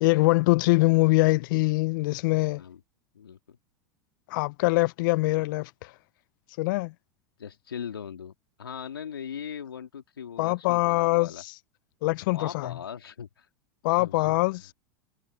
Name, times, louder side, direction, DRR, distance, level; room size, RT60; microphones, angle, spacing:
voice 1, 0.0-2.6 4.3-5.9 6.6-6.9 10.4-11.5 12.0-12.7 13.8-14.7, left 23 dB, 60° left, 0.8 m, -23 dB
voice 2, 3.1-3.6 7.4-11.4 12.3-13.5 13.9-14.4, left 8 dB, 85° left, 2.6 m, -39 dB
hypercardioid pair, 90°, 12 cm